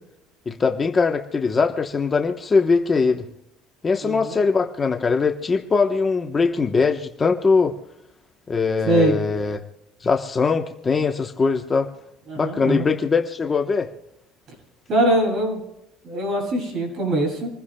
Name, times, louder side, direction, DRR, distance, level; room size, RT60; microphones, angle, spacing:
voice 1, 0.5-3.3 3.8-7.8 8.5-9.6 10.0-11.9 12.4-13.9, left 4 dB, 20° left, 5 dB, 1.0 m, -21 dB
voice 2, 4.0-4.4 8.9-9.2 12.3-12.9 14.9-15.6 16.0-17.5, right 1 dB, 40° right, 1 dB, 7.4 m, -22 dB
28.0 x 15.5 x 2.2 m, 0.87 s
cardioid pair, 145°, 0 cm